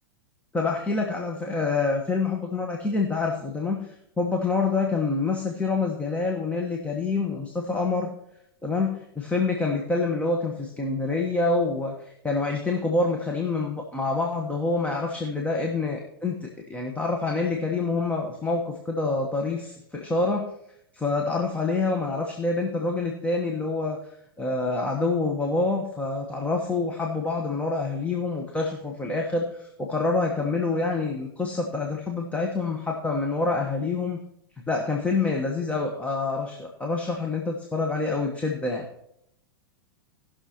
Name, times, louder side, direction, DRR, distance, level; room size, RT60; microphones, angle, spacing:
voice 1, 0.5-8.1 8.6-20.5 20.9-24.0 24.4-34.2 34.7-38.9, left 3 dB, 10° left, 1 dB, 1.2 m, -27 dB
19.0 x 6.3 x 3.0 m, 0.78 s
hypercardioid pair, 105°, 12 cm